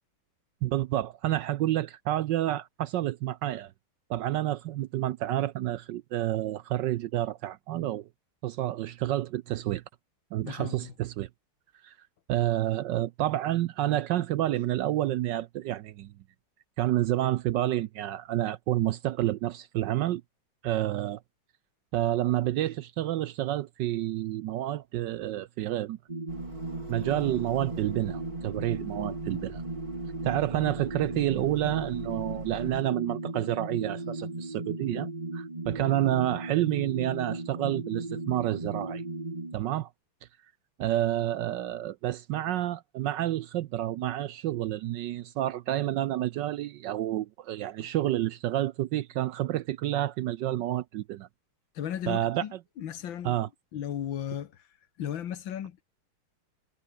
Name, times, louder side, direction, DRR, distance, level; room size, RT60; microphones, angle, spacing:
voice 1, 0.6-3.7 4.1-8.1 8.4-9.8 10.3-11.3 11.8-11.9 12.3-16.1 16.8-20.2 20.6-21.2 21.9-26.0 26.9-29.6 30.2-39.0 39.5-39.9 40.8-51.3 52.1-52.4 53.2-53.5, right 13 dB, 70° right, 1.1 m, -29 dB
voice 2, 10.4-10.9 47.8-47.9 51.8-53.4 53.7-54.7 55.0-55.8, left 10 dB, 70° left, 1.9 m, -36 dB
sound 1, 26.1-39.6, right 2 dB, 20° right, 2.3 m, -36 dB
sound 2, 26.3-32.8, right 2 dB, 45° right, 8.2 m, -46 dB
omnidirectional pair, 2.3 m